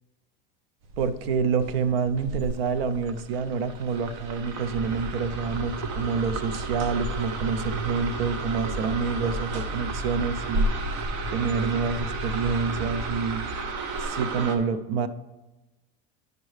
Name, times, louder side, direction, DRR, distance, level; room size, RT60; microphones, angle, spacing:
sound 1, 0.8-14.6, right 3 dB, 60° right, 0.9 m, -33 dB
voice 1, 1.0-10.7 11.3-13.5 14.0-15.1, right 5 dB, 85° right, 13 dB, 0.6 m, -27 dB
sound 2, 4.7-13.6, equal, 25° right, 1.0 m, -36 dB
11.0 x 5.3 x 3.2 m, 1.0 s
supercardioid pair, 120°, 29 cm